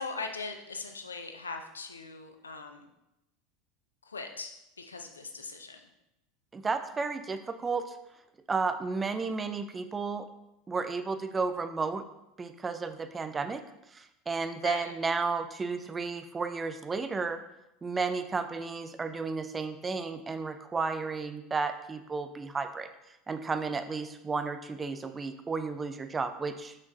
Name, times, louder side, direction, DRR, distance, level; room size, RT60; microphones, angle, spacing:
voice 1, 0.0-2.9 4.0-5.8 14.6-14.9, left 3 dB, 80° left, 6 dB, 0.6 m, -40 dB
voice 2, 6.5-7.8 8.5-10.3 10.7-12.0 12.4-13.6 13.9-17.4 17.8-22.9 23.3-26.8, right 4 dB, 20° right, 9 dB, 0.5 m, -33 dB
6.4 x 5.7 x 2.6 m, 0.88 s
figure-of-eight pair, 75°, 0 cm